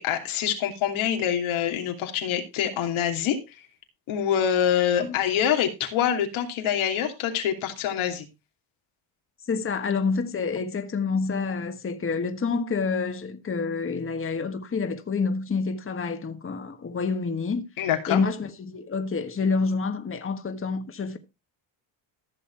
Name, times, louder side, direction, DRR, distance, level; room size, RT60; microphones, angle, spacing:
voice 1, 0.0-3.6 4.1-8.3 17.8-18.2, left 9 dB, 85° left, 2.9 m, -25 dB
voice 2, 9.5-17.7 18.1-21.2, left 4 dB, 25° left, 1.4 m, -28 dB
14.5 x 6.8 x 4.6 m
cardioid pair, 110°, 47 cm